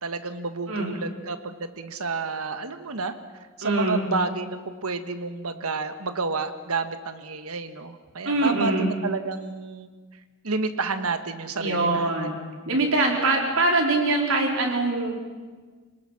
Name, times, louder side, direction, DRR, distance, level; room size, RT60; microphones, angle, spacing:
voice 1, 0.0-3.1 3.6-9.9 10.4-12.4, right 4 dB, 90° right, 9 dB, 1.5 m, -30 dB
voice 2, 3.6-4.1 8.2-8.9 11.6-12.4 12.7-15.2, right 2 dB, 75° right, 0 dB, 4.4 m, -23 dB
27.0 x 19.5 x 5.9 m, 1.4 s
head